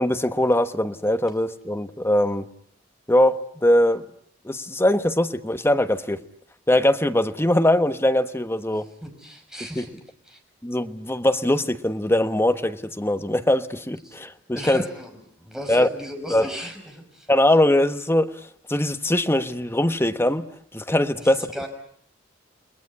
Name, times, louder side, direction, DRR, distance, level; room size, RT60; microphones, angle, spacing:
voice 1, 0.0-2.5 3.1-4.0 4.4-6.2 6.7-8.9 9.8-9.9 10.6-14.8 15.7-15.9 16.3-16.5 17.3-18.4 18.7-20.4 20.7-21.5, left 1 dB, 15° left, 1.2 m, -21 dB
voice 2, 8.7-9.9 10.3-10.4 14.1-14.2 14.5-15.1 15.4-17.3 21.2-21.7, equal, 5° right, 5.7 m, -37 dB
29.5 x 21.0 x 9.7 m
head